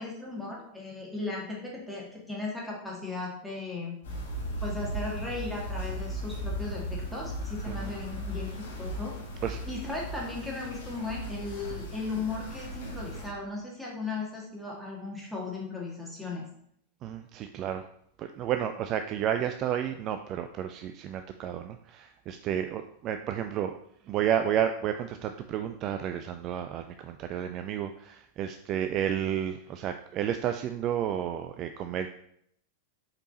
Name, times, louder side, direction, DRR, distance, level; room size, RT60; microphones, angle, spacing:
voice 1, 0.0-4.0 4.6-9.1 9.7-16.4, left 3 dB, ahead, -4 dB, 1.9 m, -36 dB
sound 1, 4.0-13.3, equal, 60° left, 1.6 m, -37 dB
voice 2, 17.0-17.9 18.2-23.7 24.1-32.1, right 10 dB, 35° right, 7 dB, 0.3 m, -31 dB
5.1 x 4.5 x 4.2 m, 0.69 s
figure-of-eight pair, 90°, 0 cm